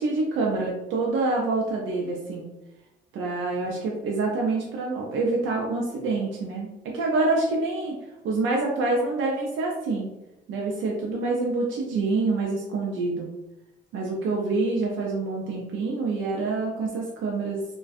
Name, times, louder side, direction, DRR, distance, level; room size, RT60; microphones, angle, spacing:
voice 1, 0.0-2.5 3.1-7.9 8.2-10.1 10.5-13.3 13.9-17.6, right 3 dB, 80° right, -2 dB, 0.5 m, -26 dB
2.5 x 2.2 x 2.4 m, 0.94 s
cardioid pair, 90°, 20 cm